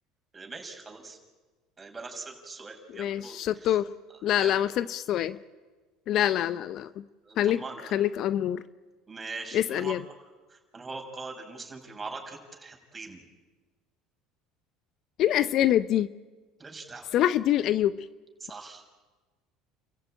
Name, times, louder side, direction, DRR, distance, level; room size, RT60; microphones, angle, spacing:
voice 1, 0.3-1.2 1.8-3.8 4.3-4.5 6.2-6.4 7.2-7.9 9.1-10.0 10.5-13.2 16.6-17.1 18.4-18.8, right 3 dB, 20° right, 2 dB, 5.9 m, -42 dB
voice 2, 2.9-3.9 4.2-5.4 6.1-7.0 7.4-7.6 7.9-8.6 9.5-10.0 15.2-16.1 17.1-18.1, left 11 dB, 55° left, 15 dB, 0.7 m, -25 dB
30.0 x 15.0 x 8.9 m, 1.3 s
supercardioid pair, 85°, 0 cm